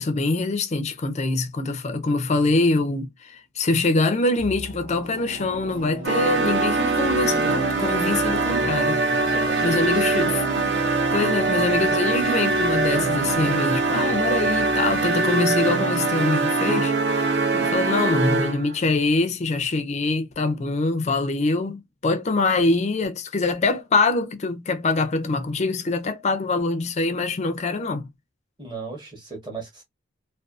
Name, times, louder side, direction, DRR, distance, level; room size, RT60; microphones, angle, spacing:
voice 1, 0.0-9.0 9.6-10.4 11.1-28.1, left 3 dB, 30° left, 0.3 m, -24 dB
sound 1, 4.4-17.5 17.8-17.9, right 2 dB, 70° right, 0.8 m, -39 dB
sound 2, 6.0-18.7, right 3 dB, 50° right, 0.4 m, -22 dB
voice 2, 9.3-10.2 28.6-29.8, right 4 dB, 20° right, 0.8 m, -37 dB
2.5 x 2.2 x 2.3 m
head